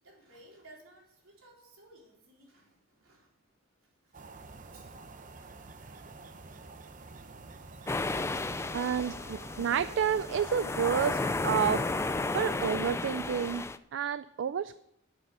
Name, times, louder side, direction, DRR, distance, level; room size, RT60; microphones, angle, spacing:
voice 1, 0.0-4.2 4.7-5.0 6.1-7.2 7.7-7.9 8.4-9.6, right 1 dB, 80° right, -2 dB, 4.0 m, -59 dB
sound 1, 4.1-12.6, right 3 dB, 40° right, 0.8 m, -48 dB
sound 2, 7.9-13.8, left 2 dB, 15° left, 0.3 m, -33 dB
voice 2, 8.7-11.9 12.3-13.6 13.9-14.8, right 7 dB, 60° right, 14 dB, 0.3 m, -30 dB
11.0 x 6.9 x 6.6 m, 0.75 s
head